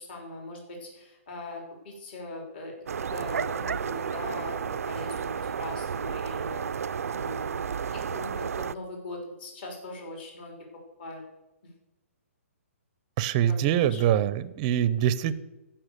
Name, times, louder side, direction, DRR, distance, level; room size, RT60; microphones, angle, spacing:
voice 1, 0.0-2.7 3.1-6.7 7.1-7.6 7.9-10.5 11.0-11.2 13.5-14.0, left 2 dB, 45° left, 0 dB, 3.3 m, -40 dB
sound 1, 2.9-8.7, right 7 dB, 90° right, 0.4 m, -32 dB
voice 2, 13.2-15.3, right 10 dB, 25° right, 17 dB, 0.6 m, -24 dB
14.5 x 5.8 x 6.7 m, 1.0 s
hypercardioid pair, 160°, 8 cm